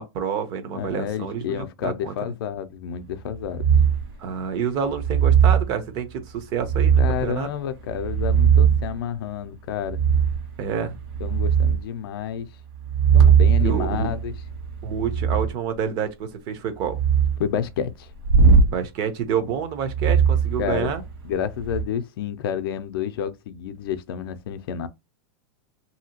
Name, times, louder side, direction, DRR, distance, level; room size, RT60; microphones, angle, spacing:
voice 1, 0.0-2.1 4.2-7.5 10.6-11.0 13.6-14.1 14.8-17.0 18.7-21.0, right 7 dB, 35° right, 0.6 m, -28 dB
voice 2, 0.7-3.6 7.0-10.0 11.2-12.5 13.1-14.3 17.4-18.1 20.6-20.9 21.2-24.9, left 9 dB, 65° left, 0.5 m, -29 dB
sound 1, 3.6-4.1 4.9-5.7 6.6-7.3 7.9-8.9 9.9-10.5 10.9-11.8 12.8-15.5 16.8-17.4 18.2-18.7 19.9-21.1 21.6-21.8, right 7 dB, 60° right, 1.4 m, -19 dB
2.8 x 2.7 x 2.8 m
supercardioid pair, 155°, 13 cm